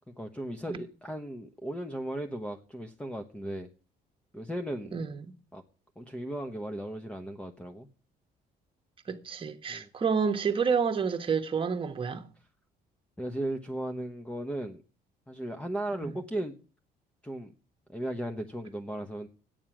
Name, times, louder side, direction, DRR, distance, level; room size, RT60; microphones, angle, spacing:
voice 1, 0.1-3.7 4.3-5.0 5.5-5.6 6.0-7.9 9.7-9.9 13.2-14.8 15.3-16.6 17.2-17.5 17.9-19.3, right 1 dB, 5° left, 1.0 m, -36 dB
voice 2, 4.9-5.2 9.1-12.3 16.0-16.1, right 6 dB, 30° right, 1.4 m, -29 dB
11.0 x 9.0 x 6.1 m
cardioid pair, 110°, 17 cm